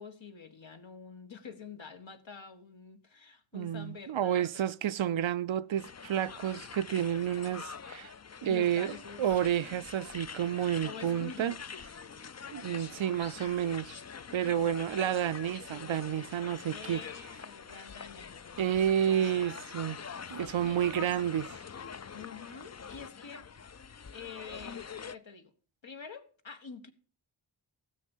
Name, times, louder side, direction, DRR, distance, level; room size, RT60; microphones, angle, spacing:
voice 1, 0.0-4.7 8.4-9.4 10.8-11.6 16.7-18.7 19.1-19.6 19.9-20.0 20.4-21.1 22.1-23.5 24.1-25.5 25.8-26.9, left 6 dB, 65° left, 1.7 m, -47 dB
voice 2, 3.5-8.1 8.4-8.9 9.2-11.6 12.5-14.0 14.3-17.0 18.6-20.0 20.3-21.6, right 10 dB, 70° right, 0.6 m, -30 dB
sound 1, 5.8-25.2, left 6 dB, 35° left, 0.5 m, -45 dB
15.5 x 6.4 x 7.2 m
wide cardioid pair, 50°, 49 cm